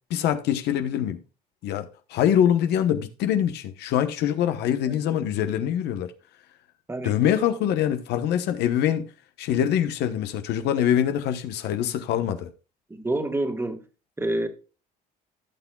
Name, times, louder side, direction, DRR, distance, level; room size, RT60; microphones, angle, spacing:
voice 1, 0.1-1.2 1.6-6.1 7.0-9.1 9.4-12.5, left 10 dB, 80° left, 1.0 m, -24 dB
voice 2, 12.9-13.8 14.2-14.5, right 1 dB, 15° right, 1.6 m, -28 dB
15.5 x 6.1 x 2.3 m
cardioid pair, 110°, 17 cm